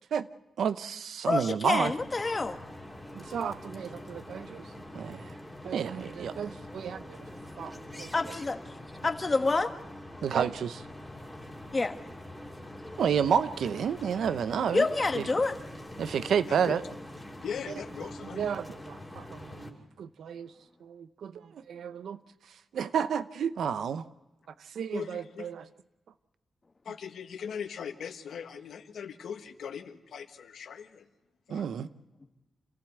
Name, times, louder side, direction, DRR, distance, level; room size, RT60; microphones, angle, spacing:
voice 1, 0.6-1.9 3.1-5.4 5.6-7.3 7.6-8.3 10.2-10.9 13.0-14.9 15.1-15.3 16.0-16.8 17.7-17.8 18.3-20.5 20.8-24.1 24.6-25.7 31.5-31.9, right 7 dB, 85° right, 14 dB, 0.7 m, -31 dB
voice 2, 1.3-2.6 8.1-8.6 9.0-9.7 11.7-12.0 14.7-15.5, left 3 dB, 25° left, 7 dB, 1.4 m, -27 dB
sound 1, 1.8-19.7, left 1 dB, ahead, 2.5 m, -44 dB
voice 3, 17.4-18.4 24.9-25.5 26.8-31.1 31.5-31.6, left 7 dB, 85° left, 7 dB, 1.4 m, -39 dB
27.0 x 15.0 x 8.0 m, 1.1 s
wide cardioid pair, 140°, 0 cm